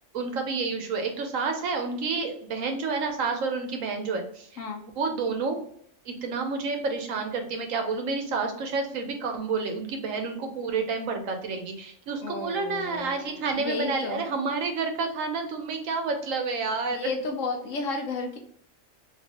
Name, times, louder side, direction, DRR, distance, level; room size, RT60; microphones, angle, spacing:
voice 1, 0.1-4.5 4.8-5.6 6.1-17.1, right 4 dB, 85° right, 5 dB, 1.1 m, -29 dB
voice 2, 12.2-14.2 16.9-18.4, left 4 dB, 75° left, 3 dB, 1.1 m, -33 dB
3.1 x 3.1 x 2.8 m, 0.64 s
omnidirectional pair, 1.4 m